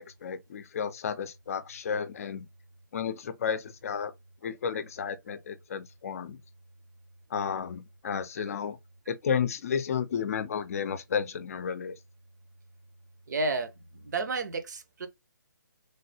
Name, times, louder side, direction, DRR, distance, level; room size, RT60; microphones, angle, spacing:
voice 1, 0.0-2.5 2.9-4.1 4.4-6.4 7.3-8.8 9.1-11.9, left 7 dB, 45° left, 0.5 m, -32 dB
voice 2, 13.3-15.1, right 3 dB, 60° right, 0.8 m, -32 dB
3.3 x 2.2 x 2.7 m
hypercardioid pair, 155°, 11 cm